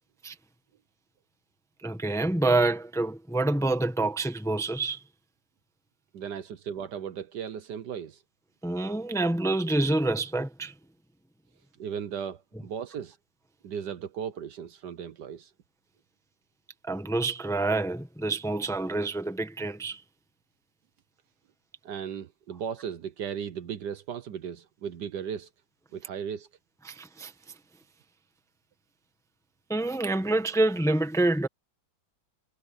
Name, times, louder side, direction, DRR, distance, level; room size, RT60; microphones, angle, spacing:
voice 1, 1.8-5.0 8.6-10.7 16.9-20.0 26.8-27.3 29.7-31.5, right 2 dB, ahead, 1.0 m, -27 dB
voice 2, 6.1-8.2 11.8-13.2 13.6-15.5 21.8-25.5 25.9-26.5, right 8 dB, 65° right, 1.4 m, -36 dB
omnidirectional pair, 2.1 m